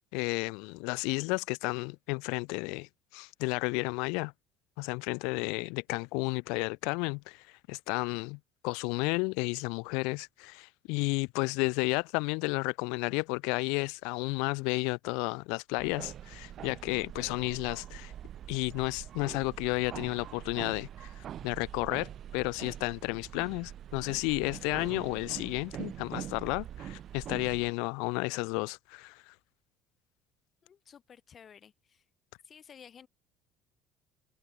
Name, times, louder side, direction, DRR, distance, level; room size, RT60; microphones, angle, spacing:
voice 1, 0.1-4.3 4.8-8.4 8.6-18.1 18.5-29.3, left 31 dB, 70° left, 0.3 m, -32 dB
sound 1, 15.8-27.7, right 10 dB, 50° right, 2.3 m, -44 dB
voice 2, 30.6-32.0 32.4-33.1, left 8 dB, 40° left, 3.4 m, -54 dB
hypercardioid pair, 65°, 0 cm